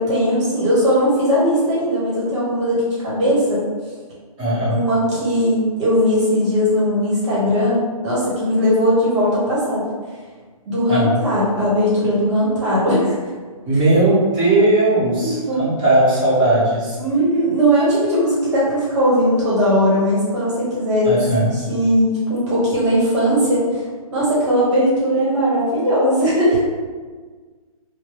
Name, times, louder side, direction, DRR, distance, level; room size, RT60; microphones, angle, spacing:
voice 1, 0.0-3.6 4.6-9.8 10.6-13.1 15.2-15.6 17.0-21.1 21.5-23.8 24.1-26.6, equal, 50° right, -7 dB, 1.2 m, -18 dB
voice 2, 4.4-4.8 10.9-11.1 13.6-17.0 21.0-21.6, right 2 dB, 20° right, -13 dB, 1.4 m, -17 dB
3.0 x 2.2 x 3.2 m, 1.5 s
hypercardioid pair, 155°, 19 cm